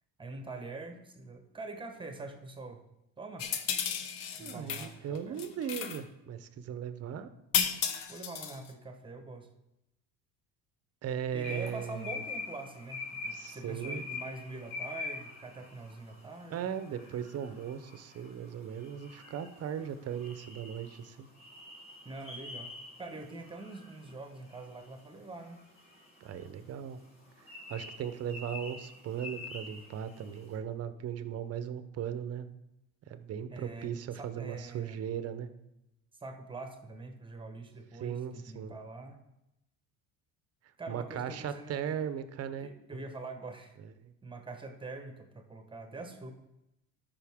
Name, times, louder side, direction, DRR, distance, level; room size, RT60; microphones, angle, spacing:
voice 1, 0.2-2.9 3.2-3.5 4.4-5.4 8.1-9.5 11.3-16.7 22.0-22.7 23.0-25.6 33.5-35.0 36.2-39.2 40.8-42.0 42.6-43.8 44.2-46.3, right 3 dB, 15° right, 5 dB, 1.1 m, -44 dB
sound 1, 3.4-4.9 5.1-6.0 7.5-8.7, left 8 dB, 75° left, 0.9 m, -33 dB
voice 2, 4.4-7.3 11.0-12.2 13.3-14.0 16.5-21.3 26.2-27.0 27.7-32.5 33.1-35.5 38.0-38.7 40.9-43.0 44.0-44.1, right 8 dB, 40° right, 11 dB, 0.8 m, -38 dB
sound 2, 11.4-30.4, left 3 dB, 35° left, 3.1 m, -45 dB
13.5 x 5.4 x 3.6 m, 0.88 s
supercardioid pair, 105°, 36 cm